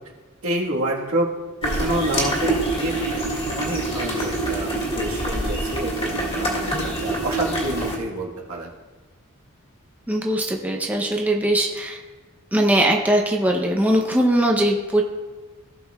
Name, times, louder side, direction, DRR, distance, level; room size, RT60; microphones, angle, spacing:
voice 1, 0.4-1.3 1.6-3.2 3.6-8.7, right 1 dB, 75° right, -2 dB, 1.5 m, -28 dB
sound 1, 1.6-8.0, right 1 dB, 25° left, 2.0 m, -25 dB
voice 2, 10.1-12.0 12.5-15.0, right 1 dB, 5° right, 1 dB, 0.6 m, -20 dB
16.5 x 6.2 x 2.3 m, 1.3 s
head